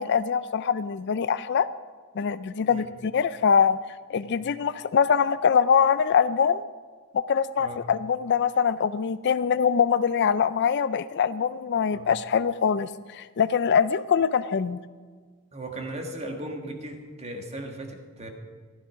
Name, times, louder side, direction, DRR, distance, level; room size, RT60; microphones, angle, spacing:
voice 1, 0.0-1.7 2.2-3.8 4.1-6.6 7.1-14.8, left 7 dB, 55° left, 15 dB, 0.4 m, -23 dB
voice 2, 15.5-18.3, right 1 dB, 30° right, 3 dB, 1.7 m, -37 dB
14.5 x 12.5 x 5.0 m, 1.6 s
head